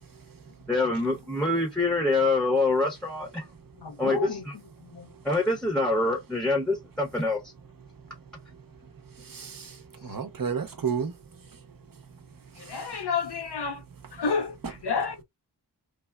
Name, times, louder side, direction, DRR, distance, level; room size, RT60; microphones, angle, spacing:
voice 1, 0.0-0.7 3.6-3.9 4.9-5.3 7.8-13.1, right 6 dB, 55° right, 0.7 m, -37 dB
voice 2, 0.7-3.4 4.0-4.2 4.5-4.6 5.2-7.4, left 2 dB, ahead, 0.8 m, -25 dB
voice 3, 3.8-4.4 4.9-5.1 10.0-10.2 12.6-13.8 14.1-15.2, left 5 dB, 70° left, 0.6 m, -30 dB
3.4 x 2.1 x 2.2 m
wide cardioid pair, 40°, 42 cm